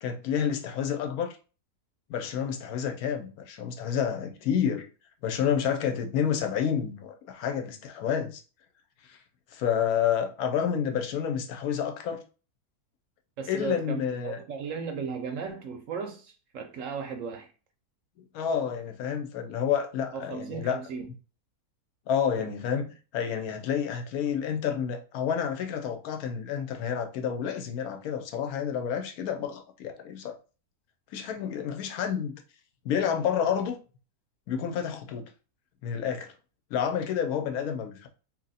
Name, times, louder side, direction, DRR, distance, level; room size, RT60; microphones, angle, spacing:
voice 1, 0.0-1.4 2.1-4.9 5.2-8.4 9.1-9.2 9.5-12.2 13.5-14.4 18.3-20.8 22.1-30.3 31.1-32.4 32.8-33.8 34.5-35.2 35.8-36.3 36.7-38.1, left 8 dB, 75° left, 1.1 m, -29 dB
voice 2, 13.4-17.5 20.1-21.1, right 5 dB, 70° right, 0.8 m, -36 dB
2.8 x 2.6 x 4.0 m
omnidirectional pair, 1.7 m